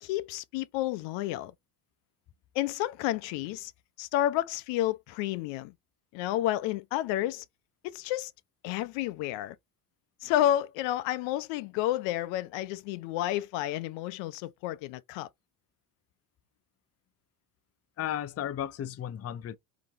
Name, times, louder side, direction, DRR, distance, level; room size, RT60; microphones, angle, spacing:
voice 1, 0.0-1.5 2.5-3.7 4.0-5.7 6.1-7.4 7.8-8.3 8.6-9.6 10.2-15.3, left 13 dB, 80° left, 0.7 m, -30 dB
voice 2, 18.0-19.6, left 10 dB, 35° left, 0.6 m, -34 dB
3.9 x 3.0 x 3.5 m
supercardioid pair, 90°, 44 cm